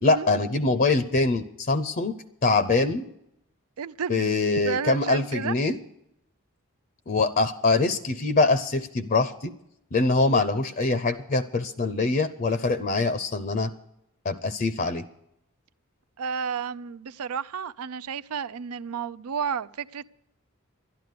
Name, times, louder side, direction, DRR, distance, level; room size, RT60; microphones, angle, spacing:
voice 1, 0.0-2.1 2.4-3.1 4.1-5.8 7.1-9.5 9.9-13.7 14.2-15.0, left 3 dB, 40° left, 0.6 m, -24 dB
voice 2, 3.8-4.3 4.7-5.5 16.2-20.1, right 6 dB, 75° right, 0.5 m, -32 dB
12.0 x 11.0 x 6.7 m
head